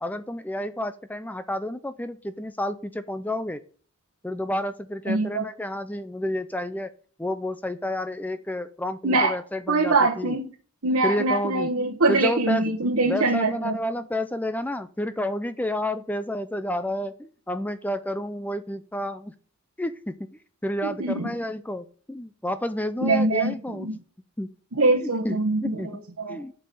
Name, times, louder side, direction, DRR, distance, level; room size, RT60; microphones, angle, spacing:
voice 1, 0.0-3.6 4.2-6.9 7.2-10.4 11.0-11.7 12.1-12.6 13.0-19.3 19.8-23.9 24.4-24.5 25.0-26.0 26.3-26.5, left 1 dB, 5° left, 0.4 m, -30 dB
voice 2, 5.1-5.4 9.0-9.3 9.7-10.5 10.8-13.8 20.8-21.3 23.0-23.9 24.7-26.4, right 2 dB, 75° right, 1.1 m, -23 dB
8.1 x 5.5 x 7.7 m
head